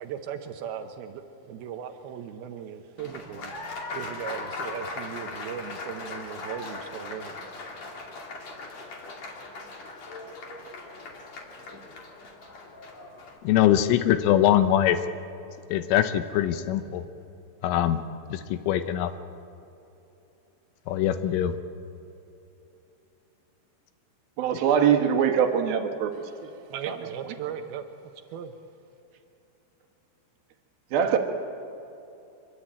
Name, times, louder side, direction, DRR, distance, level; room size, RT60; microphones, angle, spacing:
voice 1, 0.0-7.7 26.3-27.9 28.3-28.5, right 8 dB, 85° right, 6 dB, 2.1 m, -38 dB
Applause, 3.0-13.4, left 3 dB, 40° left, 2.9 m, -39 dB
voice 2, 13.4-15.0 15.7-17.0 17.6-18.0 18.3-19.1 20.9-21.6, left 11 dB, 80° left, 10 dB, 3.3 m, -22 dB
voice 3, 24.4-26.1 26.4-26.5 26.9-27.0 30.9-31.2, right 8 dB, 65° right, 5 dB, 2.7 m, -22 dB
25.5 x 23.0 x 8.9 m, 3.0 s
omnidirectional pair, 5.9 m